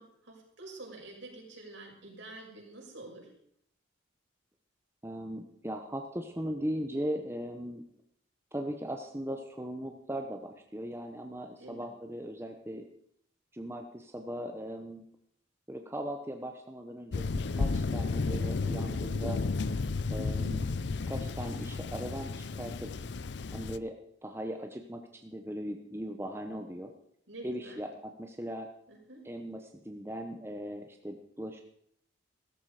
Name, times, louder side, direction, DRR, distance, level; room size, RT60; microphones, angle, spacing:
voice 1, 0.0-3.3 11.6-11.9 27.3-27.8 28.9-29.2, right 2 dB, 70° right, -1 dB, 6.2 m, -48 dB
voice 2, 5.0-7.8 8.5-12.8 13.5-15.0 15.7-17.2 17.5-19.4 20.1-20.8 21.1-22.9 23.5-23.9 24.2-26.9 27.4-28.7 29.2-31.6, equal, 10° right, 4 dB, 0.9 m, -38 dB
Thunder, 17.1-23.8, left 3 dB, 60° left, 0.5 m, -33 dB
16.5 x 13.5 x 4.9 m, 0.67 s
head